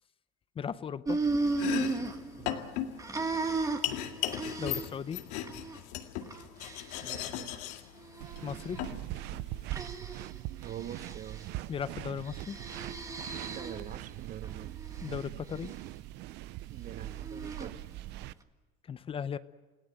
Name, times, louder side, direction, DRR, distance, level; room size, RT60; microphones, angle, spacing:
voice 1, 0.6-1.2 4.6-5.2 8.4-8.8 11.7-12.6 15.0-15.7 18.9-19.4, left 7 dB, 30° left, 0.7 m, -36 dB
sound 1, 1.0-2.7 3.0-5.1 5.4-5.8 6.2-7.2 8.0-8.8 9.7-10.3 10.7-11.4 12.2-13.9 14.4-15.2 17.0-17.7, right 3 dB, 15° right, 1.8 m, -35 dB
Domestic sounds home sounds, 1.4-9.7, left 11 dB, 90° left, 2.1 m, -37 dB
voice 2, 2.4-2.8 7.0-7.6 10.6-11.5 13.5-14.8 16.7-17.9, right 10 dB, 45° right, 1.0 m, -45 dB
sound 2, 8.2-18.3, right 16 dB, 65° right, 0.7 m, -42 dB
29.0 x 17.5 x 7.9 m
cardioid pair, 125°, 19 cm